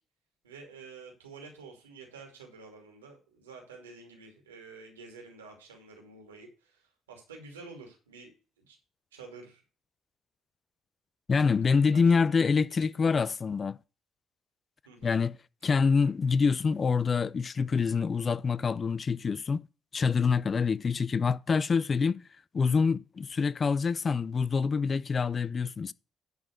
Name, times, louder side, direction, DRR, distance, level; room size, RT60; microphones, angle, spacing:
voice 1, 0.4-8.3 8.6-8.8 9.1-9.6 11.4-13.2 14.9-15.1 16.0-16.1, right 4 dB, 85° right, 2.5 m, -50 dB
voice 2, 11.3-13.8 15.0-15.4 15.6-19.6 19.9-22.2 22.5-25.9, left 5 dB, 40° left, 0.4 m, -26 dB
10.5 x 4.1 x 6.2 m
hypercardioid pair, 50°, 0 cm